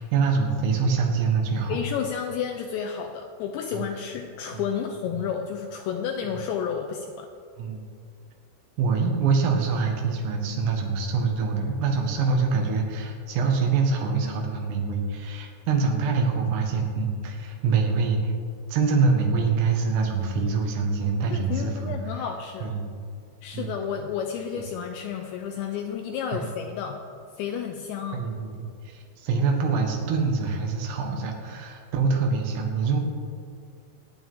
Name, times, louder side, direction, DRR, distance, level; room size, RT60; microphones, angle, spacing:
voice 1, 0.0-1.8 3.7-3.8 4.5-4.6 7.6-7.9 8.8-18.3 18.7-22.0 22.6-22.8 23.5-23.7 24.5-24.6 26.3-26.5 28.1-33.0, right 4 dB, 90° right, 1 dB, 4.1 m, -25 dB
voice 2, 1.7-7.3 21.3-22.7 23.4-27.0 27.4-28.3, left 7 dB, 80° left, 4 dB, 2.6 m, -31 dB
24.5 x 9.2 x 3.7 m, 2.3 s
omnidirectional pair, 5.7 m